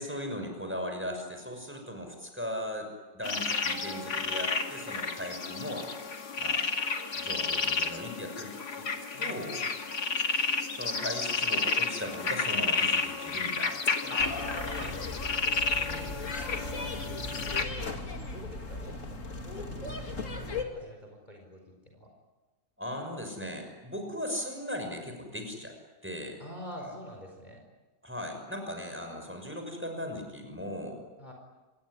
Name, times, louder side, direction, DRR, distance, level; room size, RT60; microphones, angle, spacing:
voice 1, 0.0-5.9 6.4-6.6 7.1-8.5 8.8-8.9 9.2-9.6 10.7-14.5 14.8-14.9 15.9-16.1 22.8-25.7 26.0-26.4 26.8-26.9 28.0-31.0, left 1 dB, 5° right, 4 dB, 6.2 m, -38 dB
sound 1, 3.2-17.6, left 4 dB, 60° left, 2.7 m, -31 dB
voice 2, 9.1-9.7 14.1-14.8 15.4-16.1 16.4-16.9 17.4-17.9 18.3-18.9 19.4-21.6 21.9-22.1 26.4-27.6 31.2-31.3, equal, 25° left, 2 dB, 4.9 m, -46 dB
sound 2, 14.2-20.6, left 2 dB, 45° left, 2.8 m, -37 dB
27.0 x 21.5 x 9.9 m, 1.2 s
omnidirectional pair, 1.9 m